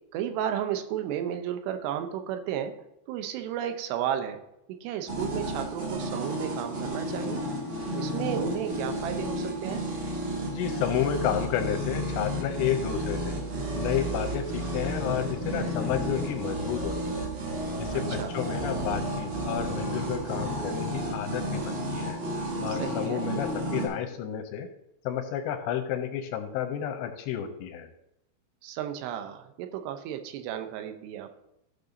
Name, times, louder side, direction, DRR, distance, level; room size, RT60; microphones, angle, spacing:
voice 1, 0.1-2.7 3.1-4.4 4.8-7.4 7.9-9.8 17.9-18.3 22.7-23.2 28.6-31.4, right 10 dB, 80° right, 7 dB, 2.6 m, -33 dB
sound 1, 5.1-23.9, right 1 dB, 50° right, 2.8 m, -32 dB
voice 2, 10.5-13.4 13.7-17.3 17.8-22.2 22.6-24.7 25.0-27.9, left 9 dB, 80° left, 5 dB, 2.7 m, -31 dB
14.5 x 6.6 x 2.7 m, 0.85 s
omnidirectional pair, 5.5 m